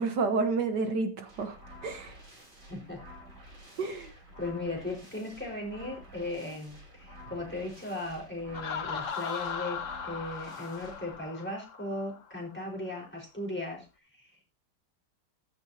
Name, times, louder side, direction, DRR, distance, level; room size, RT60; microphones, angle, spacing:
voice 1, 0.0-2.1 3.8-4.1, right 4 dB, 70° right, 7 dB, 1.9 m, -30 dB
sound 1, 1.3-11.2, equal, 45° right, 4.4 m, -51 dB
voice 2, 2.7-3.0 4.4-9.8 10.0-13.8, left 2 dB, 5° left, 0 dB, 4.8 m, -37 dB
Laughter, 8.5-12.2, left 6 dB, 50° left, 1.4 m, -38 dB
15.0 x 13.0 x 2.9 m, 0.29 s
omnidirectional pair, 1.9 m